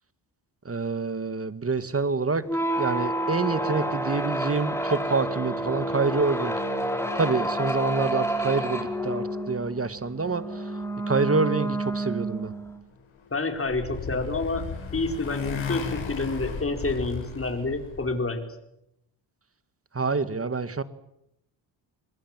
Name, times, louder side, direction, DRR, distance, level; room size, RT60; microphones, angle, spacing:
voice 1, 0.7-2.4 2.8-6.5 7.2-10.4 11.1-12.5 19.9-20.8, right 4 dB, 30° right, 13 dB, 2.0 m, -27 dB
sound 1, 2.4-12.8, right 1 dB, 5° left, 4.8 m, -29 dB
Motorcycle, 13.2-18.2, left 6 dB, 75° left, 6.1 m, -35 dB
voice 2, 13.3-14.6 14.9-18.4, left 3 dB, 30° left, 6 dB, 4.8 m, -28 dB
27.0 x 22.0 x 7.6 m, 0.82 s
cardioid pair, 75°, 46 cm